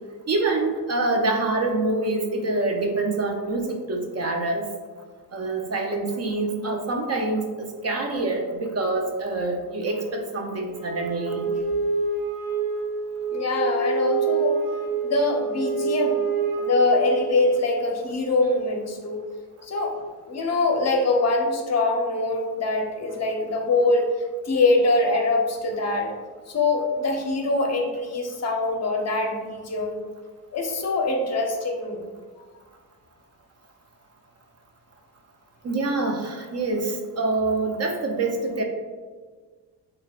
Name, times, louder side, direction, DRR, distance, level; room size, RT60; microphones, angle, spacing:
voice 1, 0.3-4.7 5.3-11.5 35.6-38.6, right 2 dB, 40° right, 3 dB, 0.5 m, -26 dB
Wind instrument woodwind instrument, 10.7-17.5, right 5 dB, 90° right, 1.2 m, -27 dB
voice 2, 13.3-14.6 15.0-16.2 16.6-19.2 19.6-20.0 20.2-24.1 24.5-26.1 26.5-30.0 30.5-32.0, left 2 dB, 40° left, 1 dB, 0.7 m, -23 dB
6.2 x 2.3 x 2.3 m, 1.5 s
cardioid pair, 85°, 41 cm